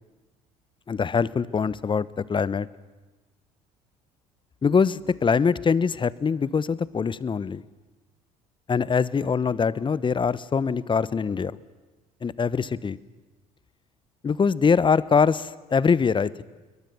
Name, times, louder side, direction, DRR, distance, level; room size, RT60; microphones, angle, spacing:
voice 1, 0.9-2.7 4.6-7.6 8.7-11.5 12.2-13.0 14.2-16.4, left 5 dB, 25° left, 20 dB, 1.0 m, -23 dB
28.5 x 22.0 x 7.1 m, 1.2 s
hypercardioid pair, 60°, 18 cm